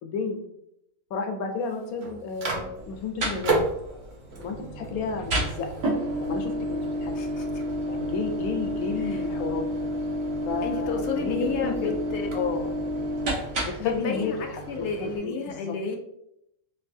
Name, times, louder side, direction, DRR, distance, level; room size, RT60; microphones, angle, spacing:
voice 1, 0.0-0.4 1.1-3.6 4.4-5.7 6.2-7.1 7.9-9.6 10.5-11.9 12.3-12.7 13.7-15.7, left 4 dB, 85° left, 4 dB, 1.1 m, -32 dB
Microwave oven, 1.5-15.2, right 3 dB, 45° right, 0.7 m, -36 dB
sound 1, 2.8-14.0, equal, 65° right, 1.5 m, -30 dB
voice 2, 7.2-7.6 9.0-9.2 10.6-12.3 13.8-16.0, left 5 dB, 65° left, 3 dB, 0.8 m, -32 dB
4.6 x 2.4 x 2.6 m, 0.78 s
omnidirectional pair, 1.5 m